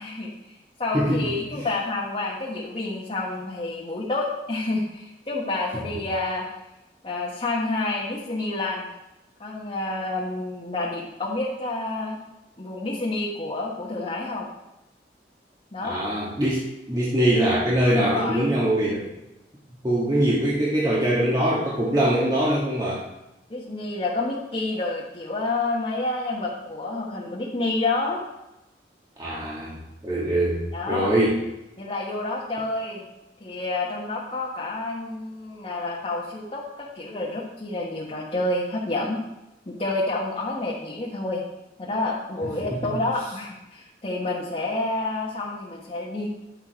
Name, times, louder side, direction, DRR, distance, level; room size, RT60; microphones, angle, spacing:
voice 1, 0.0-6.5 7.0-8.9 9.4-12.2 12.6-14.5 15.7-16.0 18.0-18.5 23.5-28.2 30.7-31.1 31.8-33.1 33.4-39.2 39.7-41.4 41.8-46.3, left 2 dB, 35° left, -5 dB, 1.4 m, -29 dB
voice 2, 0.9-1.7 15.8-19.1 19.8-23.0 29.2-31.4 42.7-42.9, right 1 dB, 25° right, -7 dB, 1.7 m, -23 dB
10.5 x 7.3 x 4.6 m, 0.95 s
head